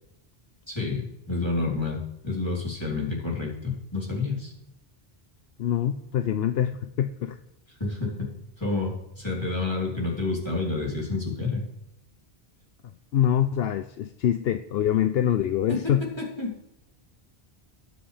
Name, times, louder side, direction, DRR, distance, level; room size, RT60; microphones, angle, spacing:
voice 1, 0.7-4.5 7.8-11.6 15.7-15.8 16.4-16.5, left 3 dB, 25° left, -4 dB, 3.6 m, -29 dB
voice 2, 5.6-7.4 13.1-16.0, left 10 dB, 75° left, 10 dB, 0.8 m, -25 dB
20.0 x 7.7 x 3.4 m, 0.88 s
omnidirectional pair, 1.0 m